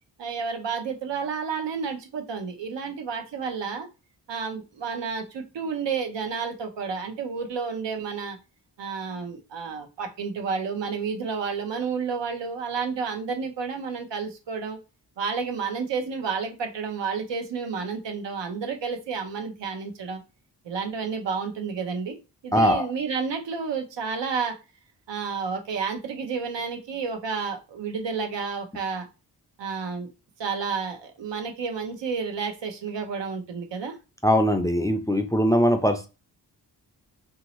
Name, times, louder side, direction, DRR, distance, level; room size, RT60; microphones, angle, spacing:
voice 1, 0.2-3.9 4.3-8.4 8.8-14.8 15.2-20.2 20.6-22.2 22.4-24.6 25.1-29.0 29.6-30.1 30.4-34.0, right 5 dB, 85° right, 4 dB, 0.8 m, -31 dB
voice 2, 22.5-22.9 34.2-36.1, equal, 10° left, 7 dB, 0.4 m, -21 dB
2.9 x 2.7 x 3.0 m, 0.29 s
cardioid pair, 75°, 42 cm